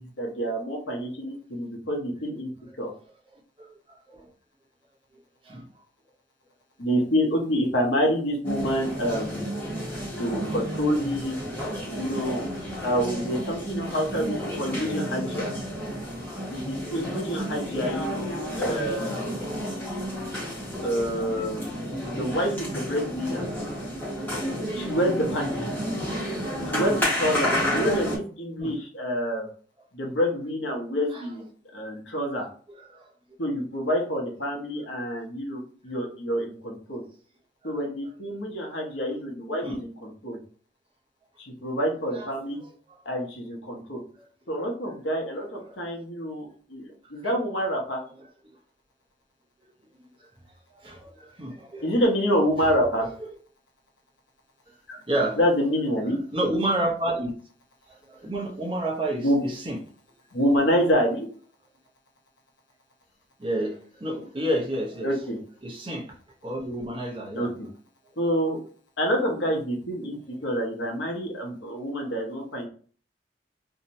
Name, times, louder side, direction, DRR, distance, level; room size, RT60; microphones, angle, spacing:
voice 1, 0.0-2.5 2.8-2.9 6.8-9.5 10.2-11.4 12.0-12.4 12.8-15.5 16.5-18.3 18.6-19.3 20.8-23.4 24.7-25.5 26.7-29.5 29.9-31.4 31.7-32.5 33.4-37.0 37.6-40.4 41.4-42.6 43.0-44.0 44.5-48.0 51.8-53.1 54.9-55.0 55.3-56.2 59.2-59.4 60.3-61.3 65.0-65.4 67.3-67.7 68.2-68.6 69.0-72.7, equal, 80° left, 0 dB, 0.8 m, -27 dB
sound 1, 8.4-28.2, equal, 10° left, 0.8 m, -31 dB
voice 2, 50.8-51.9 55.1-55.4 56.3-57.3 58.1-59.8 63.4-65.1 65.6-66.1 66.4-67.5, right 1 dB, 30° right, -2 dB, 0.6 m, -29 dB
2.7 x 2.1 x 2.7 m, 0.43 s
head